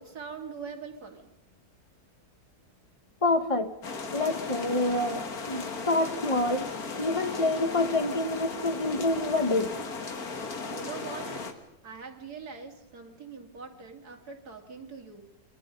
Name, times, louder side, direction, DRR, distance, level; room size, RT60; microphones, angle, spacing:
voice 1, 0.0-1.3 10.6-11.5 11.8-15.3, right 5 dB, 75° right, 3 dB, 3.2 m, -42 dB
voice 2, 3.2-3.7 4.1-6.7 7.0-9.8, left 2 dB, 20° left, 8 dB, 1.5 m, -27 dB
sound 1, 3.8-11.5, left 4 dB, 70° left, 2.4 m, -36 dB
29.0 x 22.5 x 5.4 m, 0.79 s
omnidirectional pair, 1.7 m